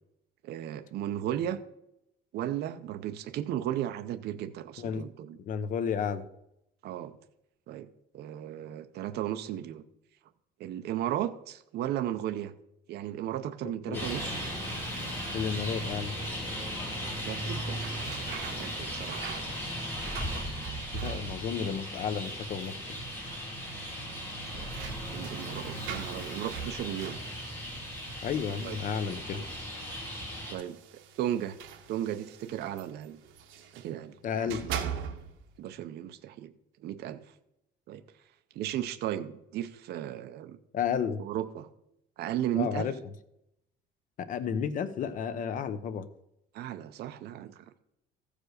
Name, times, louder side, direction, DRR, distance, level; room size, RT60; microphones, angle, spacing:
voice 1, 0.4-1.6 2.3-5.4 6.8-7.2 7.7-7.9 8.1-9.8 10.6-12.5 12.9-14.4 17.2-19.2 24.5-24.7 25.1-27.2 28.6-28.8 30.5-30.8 31.2-31.6 31.9-33.2 33.7-34.9 35.6-36.5 36.8-37.2 37.9-38.0 38.5-40.6 41.2-41.7 42.2-42.9 46.5-47.7, right 11 dB, 55° right, 9 dB, 0.7 m, -35 dB
voice 2, 5.4-6.3 13.9-14.1 15.3-16.2 21.0-22.9 28.2-29.5 34.2-34.7 40.7-41.2 42.6-42.9 44.2-46.1, left 7 dB, 45° left, 12 dB, 0.7 m, -32 dB
Traffic noise roadway noise, 13.9-30.5, equal, 10° left, 3.1 m, -37 dB
sound 1, 17.3-21.7 22.0-22.7 23.0-23.1 24.1-29.6 30.4-33.9 34.3-35.5, right 8 dB, 85° right, 1.1 m, -42 dB
14.0 x 5.0 x 6.4 m, 0.82 s
cardioid pair, 175°, 20 cm